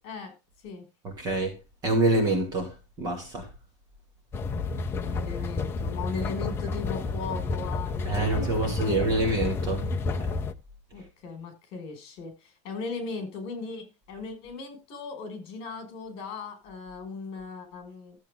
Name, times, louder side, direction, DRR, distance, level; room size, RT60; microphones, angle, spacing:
voice 1, 1.0-1.5 1.8-3.5 8.0-9.9, right 2 dB, 25° right, 2.8 m, -26 dB
sound 1, 4.3-10.5, left 4 dB, 15° left, 0.7 m, -30 dB
voice 2, 4.9-9.2 10.9-18.2, left 4 dB, 40° left, 5.5 m, -38 dB
14.0 x 8.0 x 3.6 m
supercardioid pair, 175°, 15 cm